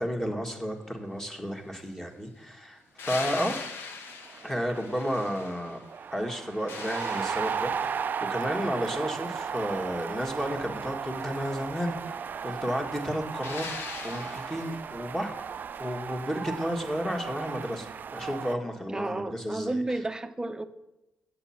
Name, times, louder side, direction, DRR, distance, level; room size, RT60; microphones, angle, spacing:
voice 1, 0.0-3.6 4.4-5.8 6.1-13.7 14.0-15.4 15.8-17.9 18.1-20.0, equal, 10° left, 1.9 m, -32 dB
sound 1, 3.0-5.9 6.3-8.1 13.4-14.9 17.4-17.5, left 5 dB, 80° left, 1.0 m, -41 dB
sound 2, 3.9-4.0 4.2-18.6, right 7 dB, 50° right, 0.4 m, -35 dB
voice 2, 18.9-20.6, right 2 dB, 20° right, 0.8 m, -32 dB
8.6 x 7.0 x 5.9 m
cardioid pair, 65°, 4 cm